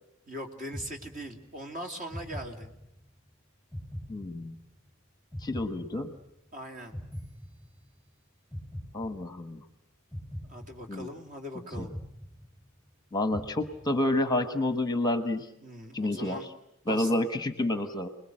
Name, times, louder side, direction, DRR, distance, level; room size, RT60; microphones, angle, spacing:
voice 1, 0.3-2.7 6.5-7.0 10.4-11.9 15.6-16.5 16.9-17.1, equal, 40° right, 4 dB, 2.9 m, -40 dB
sound 1, 0.7-1.6 2.1-3.2 3.7-4.9 5.3-6.5 6.9-8.1 8.5-9.6 10.1-11.3 11.7-12.9 13.3-14.2, equal, 5° right, 7.8 m, -42 dB
voice 2, 4.1-4.6 5.4-6.1 8.9-9.6 10.9-11.1 11.8-11.9 13.1-15.5 15.9-16.4 16.9-18.1, left 1 dB, 20° left, 9 dB, 1.1 m, -29 dB
29.0 x 21.0 x 7.7 m, 0.81 s
head